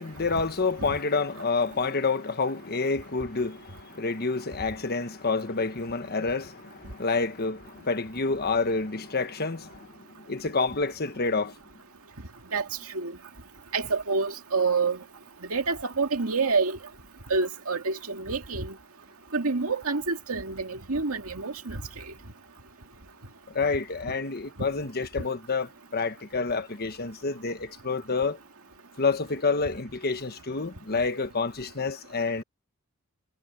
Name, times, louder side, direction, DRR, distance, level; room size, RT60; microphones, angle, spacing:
voice 1, 0.0-9.9 10.3-11.5 23.5-28.4 29.0-32.4, left 4 dB, 45° left, 1.3 m, -28 dB
voice 2, 13.7-15.0 15.5-16.8 17.3-18.7 19.3-21.8, right 4 dB, 80° right, 2.1 m, -27 dB
head